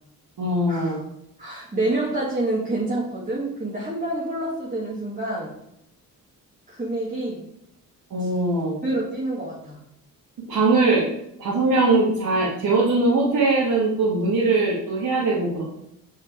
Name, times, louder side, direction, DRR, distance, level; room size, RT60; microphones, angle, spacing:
voice 1, 0.4-1.0 8.1-8.8 10.4-11.1 11.4-15.6, right 2 dB, 60° right, -6 dB, 2.5 m, -21 dB
voice 2, 1.4-5.5 6.7-7.4 8.2-8.3 8.8-9.8, right 2 dB, 20° right, -6 dB, 2.5 m, -27 dB
8.4 x 5.6 x 3.6 m, 0.77 s
supercardioid pair, 65°, 39 cm